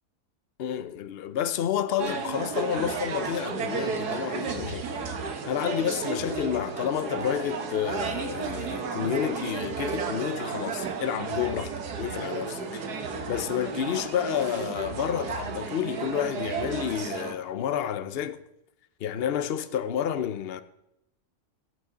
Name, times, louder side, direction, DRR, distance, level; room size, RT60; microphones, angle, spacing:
voice 1, 0.6-4.9 5.4-12.8 13.3-18.4 19.0-20.6, left 9 dB, 55° left, 0.7 m, -30 dB
sound 1, 2.0-17.3, right 5 dB, 85° right, 1.7 m, -33 dB
Wind instrument woodwind instrument, 7.4-12.6, right 6 dB, 45° right, 0.5 m, -47 dB
17.0 x 8.4 x 3.8 m
omnidirectional pair, 1.6 m